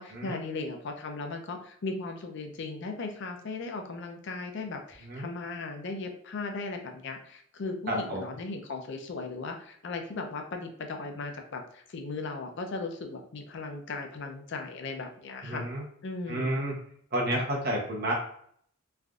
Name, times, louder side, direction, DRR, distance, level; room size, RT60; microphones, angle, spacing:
voice 1, 0.0-15.7 16.0-16.6, left 3 dB, 60° left, 4 dB, 0.5 m, -37 dB
voice 2, 7.9-8.3 15.4-15.8 16.3-16.8 17.1-18.1, right 1 dB, 50° right, -1 dB, 0.9 m, -30 dB
3.3 x 2.5 x 2.3 m, 0.64 s
head